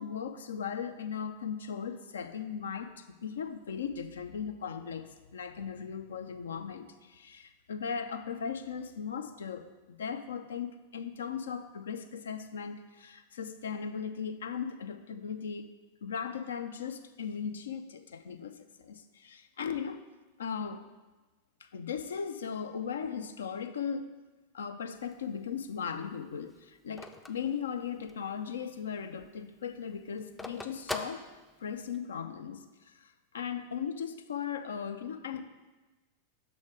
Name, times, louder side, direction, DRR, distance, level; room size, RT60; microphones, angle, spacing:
voice 1, 0.0-15.7 16.0-20.0 20.4-20.9 21.6-24.1 24.5-31.2 31.6-35.4, left 7 dB, 65° left, 9 dB, 0.4 m, -38 dB
Telephone, 24.9-28.4 28.8-28.9 29.1-32.0, left 2 dB, 5° left, 0.4 m, -42 dB
6.5 x 4.2 x 4.8 m, 1.2 s
figure-of-eight pair, 90°, 0 cm